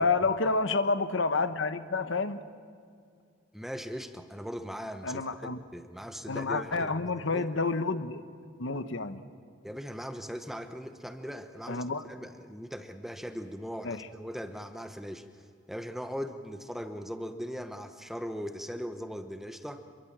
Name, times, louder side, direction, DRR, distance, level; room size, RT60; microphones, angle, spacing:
voice 1, 0.0-2.4 5.0-5.6 6.3-8.2 8.6-9.2 11.7-12.0 13.8-14.1, left 3 dB, 80° left, 1.1 m, -29 dB
voice 2, 3.5-7.4 9.6-19.8, equal, ahead, 1.0 m, -39 dB
26.5 x 23.5 x 7.4 m
head